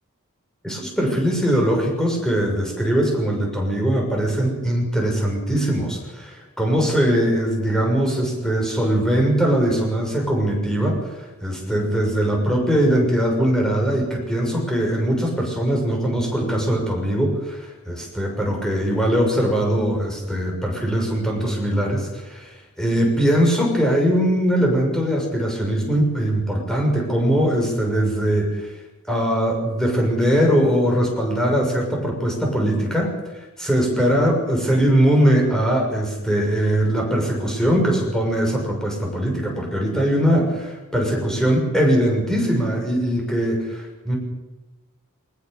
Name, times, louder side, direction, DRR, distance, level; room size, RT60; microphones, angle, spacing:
voice 1, 0.6-28.7 29.1-44.2, right 1 dB, 5° left, 0 dB, 6.4 m, -21 dB
21.5 x 20.0 x 6.8 m, 1.1 s
head